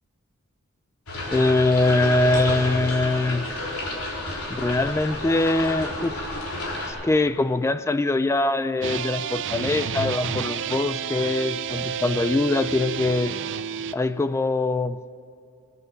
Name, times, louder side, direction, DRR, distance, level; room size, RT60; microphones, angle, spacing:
sound 1, 1.1-6.9, left 1 dB, 90° left, 3.8 m, -31 dB
voice 1, 1.3-3.5 4.5-6.3 6.9-13.3 13.9-15.0, left 2 dB, 15° left, 13 dB, 0.3 m, -23 dB
sound 2, 8.8-13.9, right 7 dB, 60° right, 0.5 m, -30 dB
19.5 x 11.0 x 6.4 m, 2.6 s
head